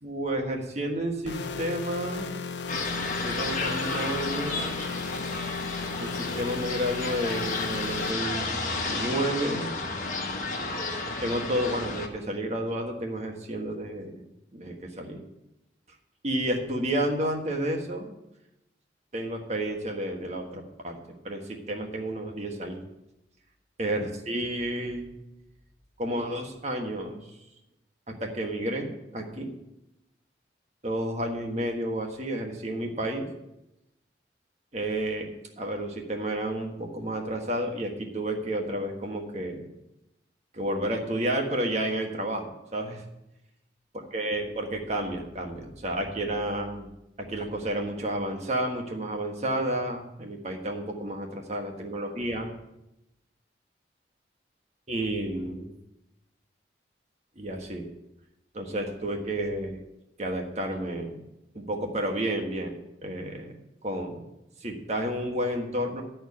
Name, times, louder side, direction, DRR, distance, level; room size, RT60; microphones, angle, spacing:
voice 1, 0.0-2.3 3.2-4.7 6.0-9.7 11.2-14.2 14.5-15.2 16.2-18.1 19.1-21.0 21.2-22.8 23.8-25.1 26.0-27.2 28.1-29.5 30.8-33.3 34.7-35.3 35.6-39.6 40.5-42.4 42.7-43.0 44.1-46.9 47.2-52.5 54.9-55.7 57.4-57.9 58.5-59.8 60.2-61.2 61.5-64.2 64.6-66.0, right 1 dB, 40° right, 2 dB, 1.5 m, -31 dB
sound 1, 1.3-8.1, left 4 dB, 80° left, 0.7 m, -36 dB
sound 2, 2.7-12.1, left 3 dB, 45° left, 1.4 m, -32 dB
12.5 x 4.5 x 8.4 m, 0.90 s
head